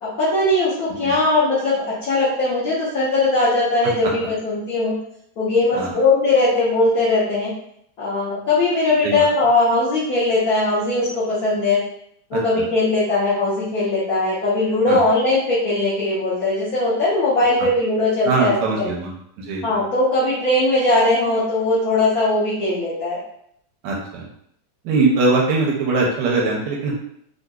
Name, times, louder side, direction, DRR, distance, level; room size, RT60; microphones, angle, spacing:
voice 1, 0.0-4.9 5.4-7.5 8.0-11.8 12.3-18.9 19.6-23.2, left 2 dB, 60° left, -10 dB, 1.3 m, -19 dB
voice 2, 12.3-12.6 14.9-15.0 18.2-19.1 19.4-19.8 23.8-24.2 24.8-26.9, right 3 dB, 85° right, -2 dB, 1.3 m, -21 dB
3.8 x 2.5 x 2.3 m, 0.71 s
omnidirectional pair, 1.8 m